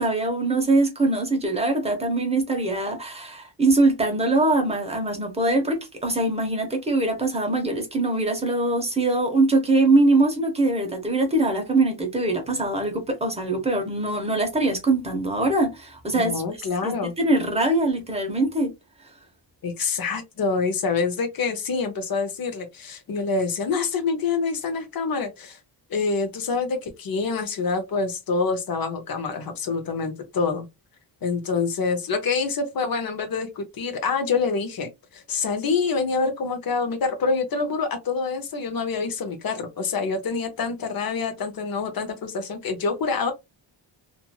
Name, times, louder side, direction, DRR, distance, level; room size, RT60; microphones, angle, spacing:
voice 1, 0.0-16.4 16.8-18.7, right 2 dB, 15° right, 0.8 m, -22 dB
voice 2, 16.1-17.1 19.6-25.6 25.9-30.7 31.2-43.3, left 4 dB, 50° left, 0.8 m, -26 dB
2.9 x 2.6 x 2.2 m
wide cardioid pair, 160°, 47 cm